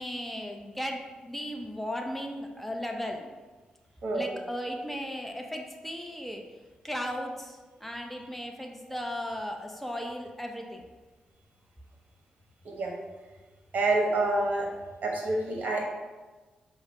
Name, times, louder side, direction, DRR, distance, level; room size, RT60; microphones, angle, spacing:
voice 1, 0.0-3.3 4.1-6.4 6.8-10.8, equal, 5° left, 2 dB, 0.8 m, -36 dB
voice 2, 13.7-14.7 15.0-15.8, right 2 dB, 60° right, -1 dB, 0.9 m, -27 dB
4.9 x 2.1 x 4.8 m, 1.3 s
supercardioid pair, 40°, 3 cm